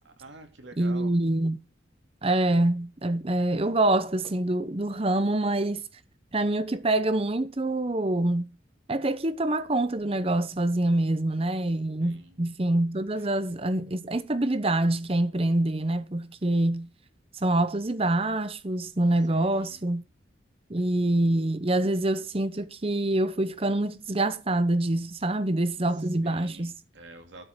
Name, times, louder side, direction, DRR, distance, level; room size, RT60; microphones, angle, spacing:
voice 1, 0.0-1.1 12.0-12.4 19.3-19.8 26.2-27.5, right 2 dB, 80° right, 2.7 m, -48 dB
voice 2, 0.8-1.6 2.2-5.8 6.3-8.5 8.9-16.9 17.4-20.0 20.7-26.7, right 1 dB, 30° right, 0.8 m, -26 dB
12.0 x 5.5 x 6.1 m
head